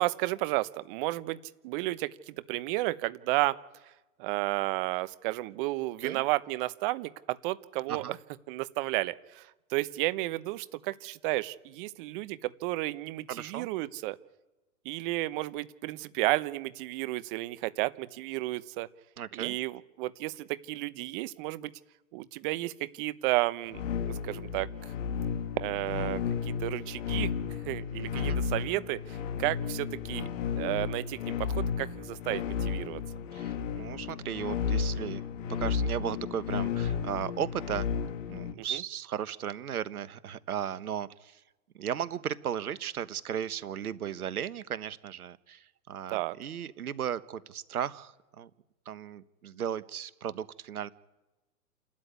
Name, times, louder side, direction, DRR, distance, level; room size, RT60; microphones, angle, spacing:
voice 1, 0.0-1.4 1.6-3.6 4.2-8.0 8.5-14.2 14.8-18.9 19.3-21.7 22.1-24.7 25.6-27.3 27.7-30.3 30.6-33.0 38.6-38.8 46.1-46.3, right 19 dB, 35° right, 15 dB, 1.0 m, -32 dB
voice 2, 13.3-13.7 19.2-19.6 28.1-28.4 33.3-35.2 35.6-37.9 38.3-41.4 41.7-48.5 48.8-50.9, right 9 dB, 75° right, 15 dB, 1.4 m, -36 dB
sound 1, 23.7-38.5, left 6 dB, 55° left, 1.6 m, -33 dB
28.5 x 13.0 x 9.6 m, 1.1 s
hypercardioid pair, 125°, 45 cm